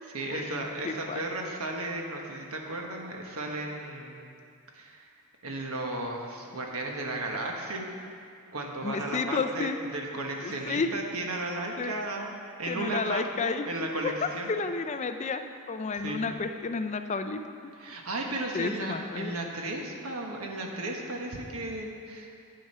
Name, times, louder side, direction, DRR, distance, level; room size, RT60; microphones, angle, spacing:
voice 1, 0.1-4.2 4.7-5.1 5.4-8.2 8.5-14.5 15.9-16.2 17.8-22.3, right 2 dB, 70° right, 1 dB, 1.3 m, -35 dB
voice 2, 0.8-1.2 8.8-9.8 10.4-10.9 11.8-11.9 12.7-13.7 14.0-14.1 14.5-15.4 15.7-17.4 18.5-19.3, left 4 dB, 30° left, 8 dB, 0.4 m, -31 dB
9.4 x 7.8 x 5.5 m, 2.4 s
head